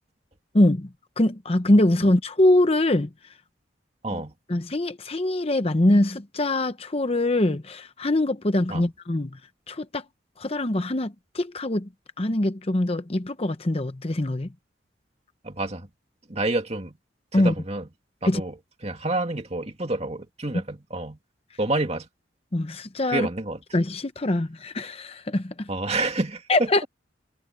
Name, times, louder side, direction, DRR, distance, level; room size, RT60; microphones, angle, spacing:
voice 1, 0.5-0.9 1.2-3.1 4.1-4.2 4.5-9.4 9.7-10.0 10.4-11.9 12.2-14.5 17.3-17.5 18.2-18.4 22.5-23.3 23.7-25.7 26.5-26.8, left 1 dB, 30° left, 0.8 m, -23 dB
voice 2, 15.4-15.9 16.3-17.0 17.3-17.9 18.2-18.5 18.8-21.2 21.6-22.1 23.1-23.6 25.7-26.7, right 2 dB, 35° right, 2.3 m, -28 dB
head